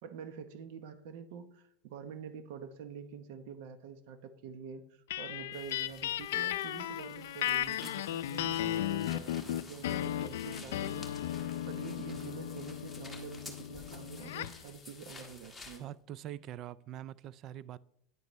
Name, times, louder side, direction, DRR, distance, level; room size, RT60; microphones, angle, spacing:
voice 1, 0.0-11.4 11.7-15.8, right 7 dB, 60° right, 0.9 m, -47 dB
sound 1, 5.1-14.6, left 12 dB, 85° left, 0.4 m, -36 dB
sound 2, 5.5-15.2, left 8 dB, 25° left, 1.4 m, -61 dB
sound 3, 7.4-15.8, left 3 dB, 5° left, 1.5 m, -52 dB
voice 2, 15.8-17.8, right 12 dB, 35° right, 0.3 m, -44 dB
9.7 x 9.4 x 3.1 m
supercardioid pair, 150°, 0 cm